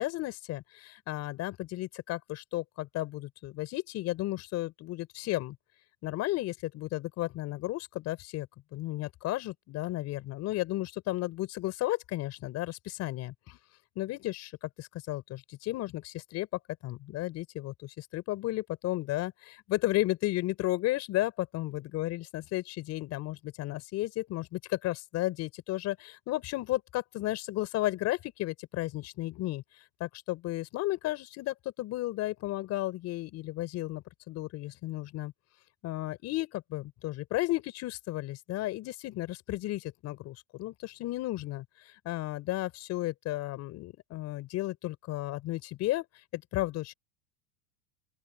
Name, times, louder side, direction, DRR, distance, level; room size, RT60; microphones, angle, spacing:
voice 1, 0.0-5.6 6.0-13.6 14.0-16.5 16.8-29.6 30.0-35.3 35.8-46.1 46.3-46.9, left 17 dB, 40° left, 5.5 m, -33 dB
open air
supercardioid pair, 155°, 42 cm